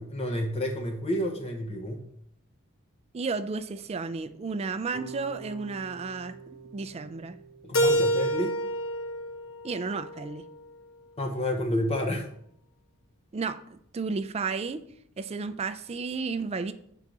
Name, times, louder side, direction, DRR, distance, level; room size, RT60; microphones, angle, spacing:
voice 1, 0.0-2.0 7.6-8.5 11.2-12.3, left 1 dB, 30° left, 0.7 m, -30 dB
voice 2, 3.1-6.4 6.7-7.4 9.6-10.5 13.3-14.9 15.2-16.7, right 4 dB, 30° right, 0.3 m, -33 dB
sound 1, 4.9-10.0, right 5 dB, 80° right, 1.0 m, -47 dB
Keyboard (musical), 7.7-10.6, equal, 70° left, 0.9 m, -28 dB
7.2 x 3.9 x 4.7 m
head